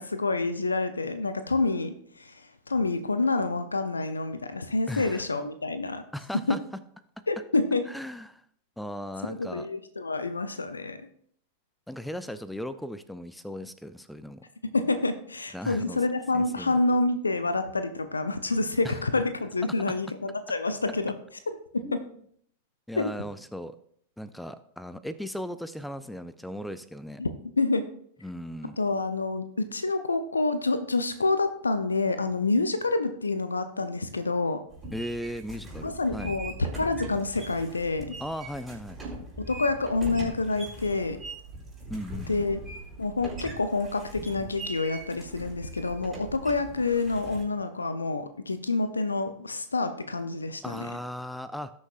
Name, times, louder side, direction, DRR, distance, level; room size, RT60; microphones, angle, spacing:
voice 1, 0.0-2.3 2.7-6.0 6.5-6.6 7.3-7.8 9.3-11.0 14.7-21.1 21.7-21.8 23.0-23.1 27.2-27.3 27.6-27.8 28.8-34.6 35.8-38.2 39.5-41.2 42.3-42.6 43.0-50.9, left 3 dB, 80° left, 10 dB, 0.6 m, -27 dB
voice 2, 4.9-5.3 6.1-6.8 7.2-7.3 7.9-8.4 8.8-9.7 11.9-14.4 15.5-16.0 16.3-16.8 18.8-19.0 21.8-22.1 22.9-23.8 24.2-27.2 28.2-28.8 34.9-36.4 38.2-39.0 41.9-42.5 50.6-51.7, equal, 5° left, 14 dB, 0.4 m, -37 dB
sound 1, 34.7-47.4, right 2 dB, 15° right, 4.0 m, -41 dB
18.5 x 6.3 x 2.5 m, 0.63 s
figure-of-eight pair, 90°, 0 cm